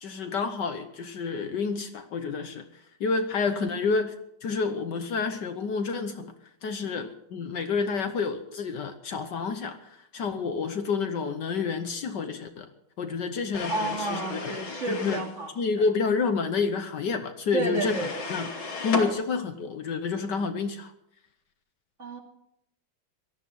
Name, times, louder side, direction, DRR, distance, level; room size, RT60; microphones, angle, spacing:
voice 1, 0.0-4.2 4.4-6.3 6.6-12.7 13.0-14.5 14.9-15.2 15.6-18.5 18.8-20.9, left 4 dB, 60° left, 8 dB, 1.5 m, -29 dB
sound 1, 13.5-15.3 17.8-19.1, left 3 dB, 80° left, 3.2 m, -34 dB
voice 2, 13.7-15.9 17.5-18.1 22.0-22.2, right 2 dB, 35° right, 1 dB, 3.0 m, -31 dB
18.5 x 13.0 x 5.5 m, 0.79 s
omnidirectional pair, 2.2 m